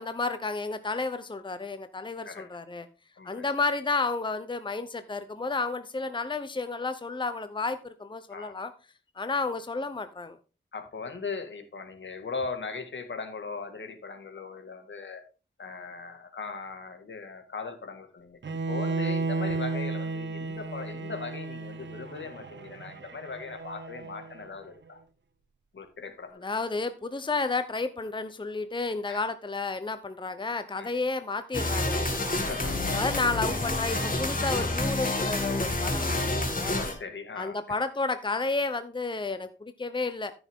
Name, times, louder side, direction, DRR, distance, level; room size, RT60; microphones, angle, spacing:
voice 1, 0.0-2.9 3.2-8.7 9.2-10.4 26.4-32.2 32.9-36.7 37.4-40.3, left 3 dB, 25° left, 11 dB, 0.8 m, -31 dB
voice 2, 3.2-3.5 8.3-8.5 10.7-15.3 15.6-18.4 18.7-25.0 25.7-26.5 29.1-29.2 30.8-30.9 32.3-32.9 33.5-33.6 36.7-37.8, left 4 dB, 70° left, 6 dB, 2.0 m, -39 dB
Bowed string instrument, 18.4-24.5, right 3 dB, 65° right, 0.8 m, -33 dB
sound 1, 31.5-36.9, left 2 dB, 45° left, 2.3 m, -28 dB
14.0 x 6.2 x 3.7 m, 0.34 s
wide cardioid pair, 75°, 20 cm